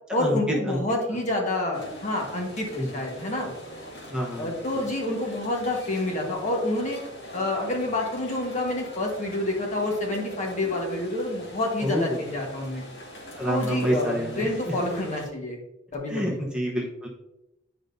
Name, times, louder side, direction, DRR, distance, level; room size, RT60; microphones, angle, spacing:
voice 1, 0.1-3.5 4.4-7.0 7.3-12.8 13.5-15.6 15.9-16.4, left 1 dB, 40° left, 0 dB, 1.4 m, -28 dB
sound 1, 1.7-15.3, equal, 65° left, 2.1 m, -42 dB
voice 2, 4.1-4.5 11.8-12.2 13.4-14.5 16.1-17.1, equal, 5° right, -2 dB, 0.9 m, -27 dB
9.8 x 5.0 x 2.7 m, 0.92 s
head